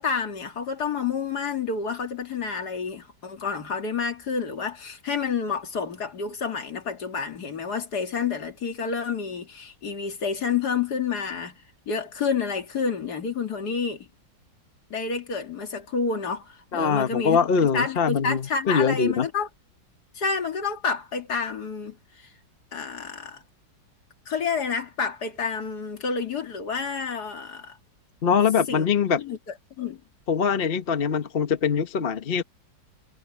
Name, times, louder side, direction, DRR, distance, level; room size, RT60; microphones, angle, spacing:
voice 1, 0.0-11.6 11.9-14.1 14.9-19.5 20.1-22.3 22.7-23.4 24.3-27.8 28.7-28.8 29.2-29.4 29.8-30.0, left 5 dB, 60° left, 2.5 m, -29 dB
voice 2, 16.7-19.3 28.2-29.2 30.3-32.4, left 6 dB, 40° left, 0.9 m, -23 dB
omnidirectional pair, 2.0 m